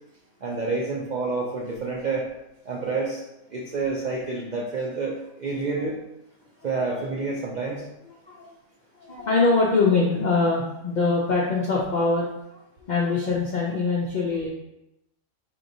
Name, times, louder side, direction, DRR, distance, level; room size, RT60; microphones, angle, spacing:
voice 1, 0.4-2.3 2.6-3.2 3.5-6.0 6.6-7.9, right 3 dB, 80° right, -2 dB, 0.4 m, -28 dB
voice 2, 9.0-12.3 12.8-14.5, left 3 dB, 70° left, -3 dB, 0.4 m, -23 dB
4.3 x 3.1 x 2.6 m, 0.89 s
omnidirectional pair, 1.5 m